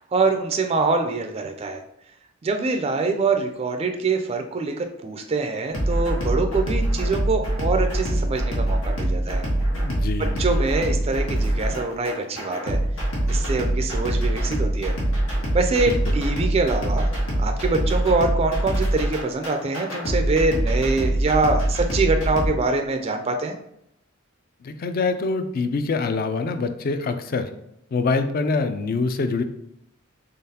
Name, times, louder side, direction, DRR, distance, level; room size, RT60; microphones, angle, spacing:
voice 1, 0.1-1.8 2.4-9.4 10.4-12.8 13.3-14.9 15.5-17.1 17.4-23.5, right 3 dB, 30° right, 5 dB, 0.3 m, -24 dB
sound 1, 5.7-22.5, right 1 dB, 90° left, 1.4 m, -24 dB
voice 2, 9.7-10.4 15.9-16.2 24.6-27.5 27.9-29.4, left 3 dB, 45° left, 9 dB, 0.4 m, -25 dB
3.8 x 3.4 x 2.8 m, 0.77 s
head